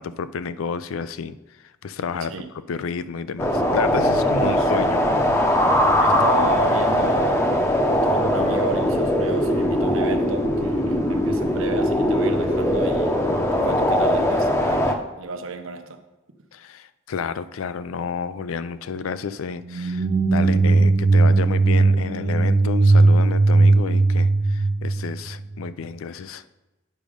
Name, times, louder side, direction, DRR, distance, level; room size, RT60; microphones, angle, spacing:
voice 1, 0.0-1.4 1.8-5.4 16.5-26.4, left 5 dB, 85° left, 14 dB, 0.4 m, -30 dB
sound 1, 3.4-14.9, left 1 dB, 15° left, 0.7 m, -20 dB
voice 2, 4.2-4.6 6.0-7.5 7.9-13.1 13.5-16.0, right 4 dB, 75° right, 7 dB, 0.9 m, -32 dB
sound 2, 19.6-25.7, right 3 dB, 45° right, 0.5 m, -18 dB
8.9 x 6.3 x 5.0 m, 1.1 s
head